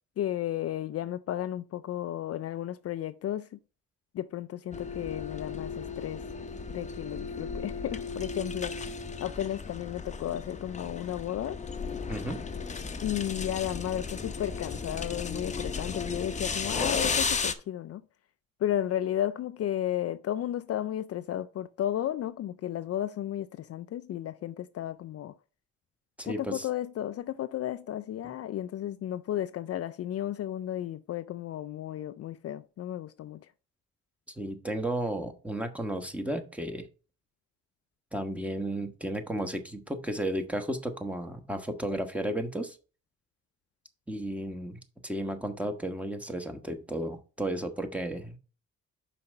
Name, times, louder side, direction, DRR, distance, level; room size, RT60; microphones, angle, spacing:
voice 1, 0.2-3.6 4.1-6.2 6.7-8.9 9.2-11.6 13.0-18.0 18.6-25.3 26.2-33.5, left 11 dB, 55° left, 0.4 m, -33 dB
sound 1, 4.7-17.5, left 4 dB, 25° left, 0.8 m, -35 dB
voice 2, 12.1-12.4 26.2-26.7 34.4-36.9 38.1-42.8 44.1-48.4, right 1 dB, 5° right, 1.2 m, -33 dB
5.8 x 4.9 x 5.4 m
cardioid pair, 90°, 30 cm